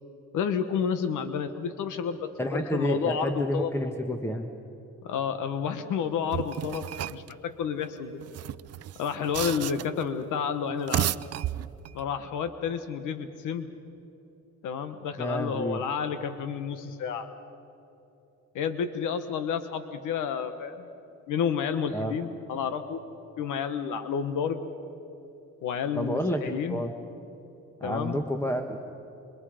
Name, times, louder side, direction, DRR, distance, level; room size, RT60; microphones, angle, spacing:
voice 1, 0.3-3.7 5.0-8.2 9.0-11.1 11.9-13.7 14.6-17.3 18.5-20.9 21.3-23.0 23.4-24.7 25.6-26.8 27.8-28.2, left 7 dB, 85° left, 10 dB, 1.3 m, -30 dB
voice 2, 2.4-4.5 15.2-15.9 21.9-22.2 25.9-26.9 27.8-28.8, equal, 10° left, 5 dB, 1.4 m, -30 dB
sound 1, 6.3-7.3 8.2-10.0 10.7-12.0, right 12 dB, 55° right, 0.5 m, -32 dB
27.5 x 26.5 x 5.1 m, 2.9 s
cardioid pair, 90°, 30 cm